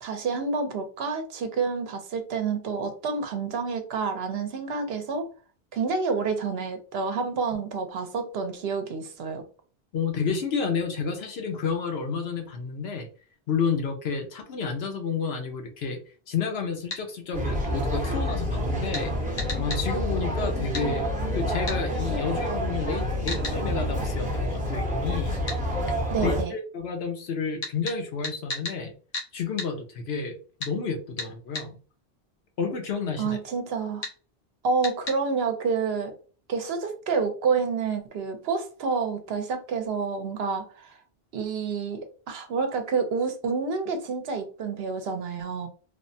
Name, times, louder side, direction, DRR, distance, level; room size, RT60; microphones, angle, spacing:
voice 1, 0.0-5.3 5.7-9.4 26.1-26.5 33.2-34.1 34.6-36.1 36.5-41.0 41.3-45.7, right 5 dB, 75° right, 0.9 m, -28 dB
voice 2, 9.9-13.1 13.5-16.0 16.3-19.1 19.6-21.0 21.3-25.4 26.2-28.9 29.3-31.8 32.6-33.4, left 5 dB, 80° left, 1.0 m, -30 dB
sound 1, 16.9-17.0 18.9-19.1 19.4-19.8 20.7-20.9 21.7-21.8 23.3-23.6 25.5-25.6 27.6-28.8 29.1-29.3 29.6-29.7 30.6-30.7 31.2-31.7 34.0-34.2 34.8-35.2, left 2 dB, 40° left, 1.0 m, -34 dB
sound 2, 17.3-26.4, equal, 10° right, 0.8 m, -28 dB
3.3 x 2.1 x 2.6 m
omnidirectional pair, 1.0 m